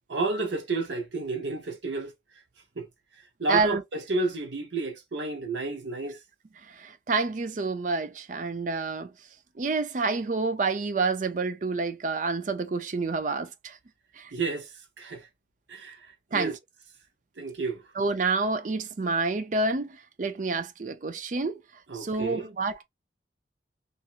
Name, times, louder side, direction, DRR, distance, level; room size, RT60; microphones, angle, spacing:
voice 1, 0.1-2.1 2.8-2.9 3.4-6.2 14.3-15.3 15.7-16.5 17.4-17.8 21.9-22.5, right 3 dB, 75° right, 0.8 m, -31 dB
voice 2, 3.5-3.8 6.7-9.1 9.6-13.8 14.2-14.3 16.3-16.5 18.0-21.6 21.9-22.8, right 3 dB, 45° right, 0.4 m, -28 dB
2.9 x 2.5 x 2.4 m
head